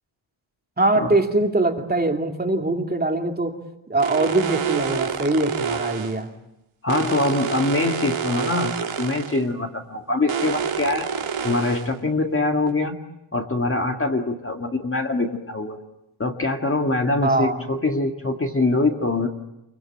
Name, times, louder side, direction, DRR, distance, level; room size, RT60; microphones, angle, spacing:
voice 1, 0.8-3.6 3.9-6.3 17.2-17.6, right 2 dB, 20° right, 3 dB, 2.6 m, -22 dB
sound 1, 4.0-6.2 6.9-9.4 10.3-11.9 12.7-12.8, right 7 dB, 70° right, 2.9 m, -28 dB
voice 2, 6.8-11.1 11.4-13.0 13.3-15.8 16.2-19.3, left 2 dB, 25° left, 3 dB, 1.9 m, -23 dB
28.5 x 23.0 x 8.9 m, 0.89 s
wide cardioid pair, 140°, 49 cm